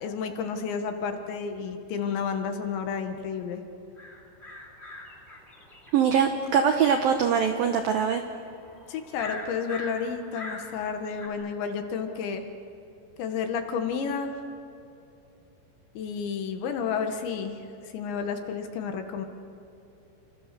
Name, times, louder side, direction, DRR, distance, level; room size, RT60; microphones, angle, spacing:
voice 1, 0.0-3.6 8.9-12.5 13.2-14.4 16.0-17.6 17.8-19.3, left 6 dB, 70° left, 5 dB, 3.5 m, -31 dB
sound 1, 4.0-11.3, left 2 dB, 15° left, 2.5 m, -44 dB
voice 2, 5.9-8.2, right 7 dB, 80° right, 5 dB, 2.1 m, -22 dB
28.5 x 26.5 x 6.8 m, 2.7 s
omnidirectional pair, 5.8 m